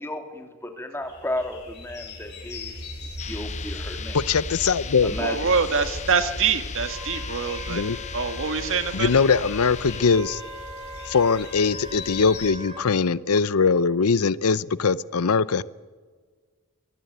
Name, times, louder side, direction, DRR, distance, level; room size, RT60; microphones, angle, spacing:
voice 1, 0.0-2.7 3.3-4.2 5.0-5.4, left 1 dB, 10° left, 5 dB, 2.8 m, -33 dB
sound 1, 1.0-12.5, left 2 dB, 50° left, 7.2 m, -39 dB
sound 2, 3.2-10.1, left 4 dB, 30° left, 0.8 m, -36 dB
voice 2, 4.1-5.1 7.7-8.0 8.9-10.4 11.1-15.6, left 5 dB, 75° left, 18 dB, 0.7 m, -21 dB
voice 3, 5.2-7.8 8.1-9.1, right 5 dB, 60° right, 9 dB, 1.8 m, -25 dB
Wind instrument woodwind instrument, 6.8-12.8, left 1 dB, 25° right, 5.3 m, -41 dB
24.5 x 19.5 x 9.3 m, 1.5 s
head